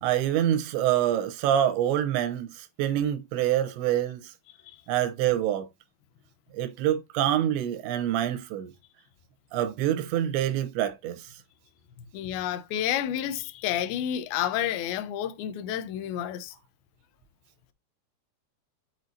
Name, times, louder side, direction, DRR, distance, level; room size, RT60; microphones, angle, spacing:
voice 1, 0.0-4.3 4.9-5.7 6.5-8.7 9.5-11.2, right 11 dB, 85° right, 3.2 m, -26 dB
voice 2, 12.1-16.5, left 11 dB, 75° left, 2.3 m, -30 dB
7.8 x 4.8 x 2.7 m
omnidirectional pair, 5.2 m